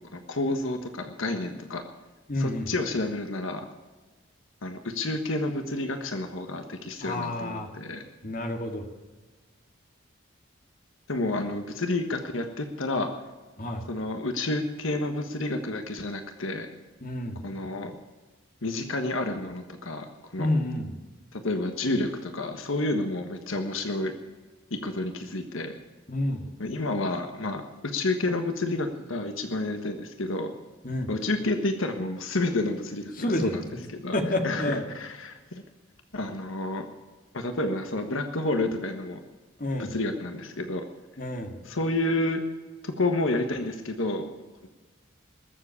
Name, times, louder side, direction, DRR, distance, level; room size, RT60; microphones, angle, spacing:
voice 1, 0.1-1.8 2.4-3.6 4.6-8.0 11.1-13.1 13.9-16.7 17.4-17.9 18.6-20.5 21.3-24.2 24.7-25.7 26.6-30.5 31.1-33.6 33.9-34.1 34.4-35.6 36.1-36.9 37.3-39.2 39.8-40.8 41.6-42.4 42.8-44.3, left 2 dB, 75° left, 6 dB, 1.4 m, -30 dB
voice 2, 2.3-2.7 7.0-7.7 8.2-8.9 13.6-13.9 17.0-17.5 20.4-21.0 26.1-26.5 30.8-31.1 33.2-33.5 34.1-34.8 39.6-39.9 41.2-41.6, left 1 dB, 40° left, 4 dB, 2.0 m, -29 dB
21.0 x 7.7 x 8.4 m, 1.3 s
head